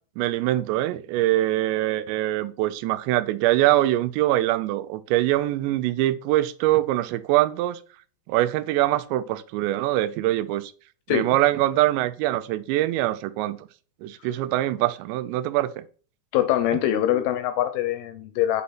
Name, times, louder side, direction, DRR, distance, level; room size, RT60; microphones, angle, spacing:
voice 1, 0.2-7.8 8.3-10.7 11.1-13.6 14.0-15.8, right 15 dB, 85° right, 2.9 m, -23 dB
voice 2, 16.3-18.6, left 12 dB, 75° left, 2.3 m, -23 dB
8.6 x 4.2 x 5.7 m
omnidirectional pair, 5.0 m